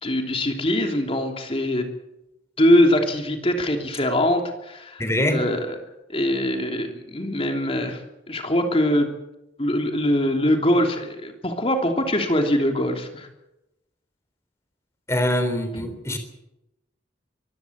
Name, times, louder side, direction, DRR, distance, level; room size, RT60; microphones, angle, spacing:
voice 1, 0.0-1.9 2.6-5.8 6.1-8.0 8.3-9.1 9.6-13.3, left 1 dB, 30° left, 4 dB, 3.1 m, -22 dB
voice 2, 5.0-5.4 15.1-16.2, left 1 dB, 15° left, 7 dB, 3.6 m, -23 dB
24.0 x 16.0 x 8.2 m, 0.92 s
head